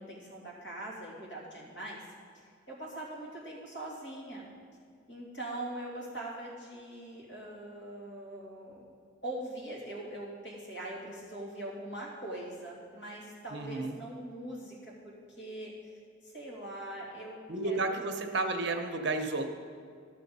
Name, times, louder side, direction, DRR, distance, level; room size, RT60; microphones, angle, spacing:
voice 1, 0.0-2.0 2.3-4.5 5.1-8.8 9.2-17.9, right 1 dB, 65° left, -4 dB, 2.8 m, -42 dB
voice 2, 13.5-14.0 17.5-19.5, right 3 dB, 60° right, 5 dB, 0.9 m, -32 dB
12.5 x 6.7 x 5.4 m, 2.1 s
head